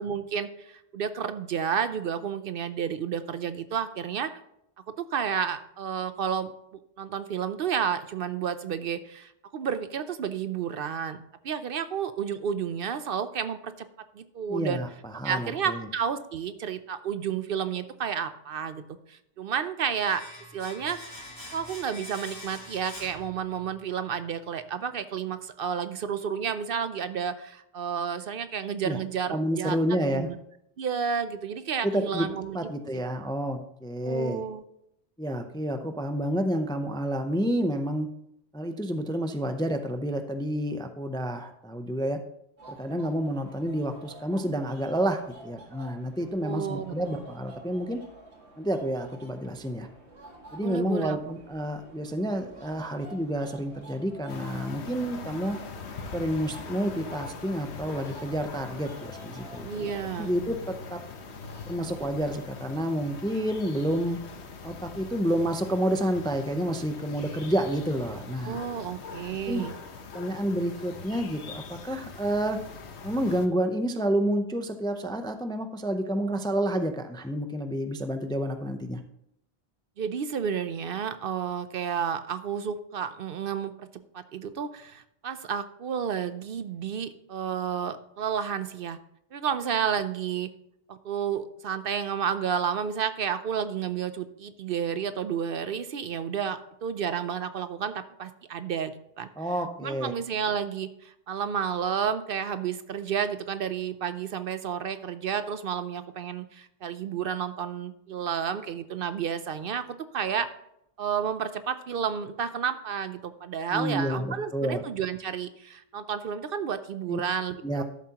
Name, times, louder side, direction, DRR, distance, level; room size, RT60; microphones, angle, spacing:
voice 1, 0.0-4.3 5.1-6.5 7.0-13.9 14.1-14.8 15.2-18.8 19.1-20.2 20.5-21.2 21.5-29.8 30.0-30.3 30.8-32.6 34.0-34.6 46.4-46.9 50.6-51.2 59.7-60.3 68.4-69.7 80.0-83.9 84.1-89.0 89.3-90.5 90.9-97.9 98.2-99.3 99.8-109.8 110.1-110.5 111.0-117.8, right 7 dB, 60° right, 11 dB, 0.7 m, -31 dB
voice 2, 14.5-15.9 28.8-29.0 29.3-30.3 31.8-32.3 32.5-34.4 35.2-38.1 38.5-42.2 42.7-48.0 48.6-49.9 50.5-55.6 56.1-59.7 60.2-61.0 61.7-64.2 64.6-68.6 69.5-69.6 70.1-72.6 73.0-79.0 99.4-100.1 113.7-114.8 117.1-117.2 117.6-117.8, equal, 5° left, 7 dB, 0.4 m, -29 dB
Domestic sounds home sounds, 20.0-23.9 24.1-24.3, left 2 dB, 25° left, 3.2 m, -44 dB
sound 1, 42.6-62.3, right 2 dB, 80° right, 2.3 m, -50 dB
sound 2, 54.3-73.5, left 5 dB, 90° left, 1.2 m, -42 dB
12.5 x 7.4 x 2.9 m, 0.77 s
omnidirectional pair, 1.1 m